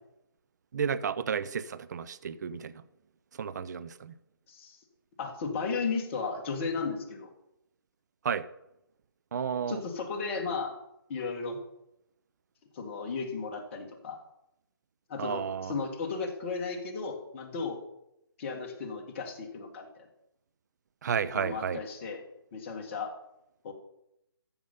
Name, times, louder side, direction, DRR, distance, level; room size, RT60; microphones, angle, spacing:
voice 1, 0.7-2.7 3.4-4.1 8.2-8.4 9.3-9.8 15.2-15.7 21.0-21.8, right 7 dB, 50° right, 15 dB, 0.7 m, -32 dB
voice 2, 5.2-7.3 9.7-10.7 11.1-11.6 12.7-14.2 15.1-17.8 18.4-19.9 21.3-22.2 22.5-23.1 23.6-23.7, left 4 dB, 30° left, 1 dB, 1.9 m, -34 dB
14.0 x 7.2 x 5.5 m, 0.84 s
hypercardioid pair, 155°, 12 cm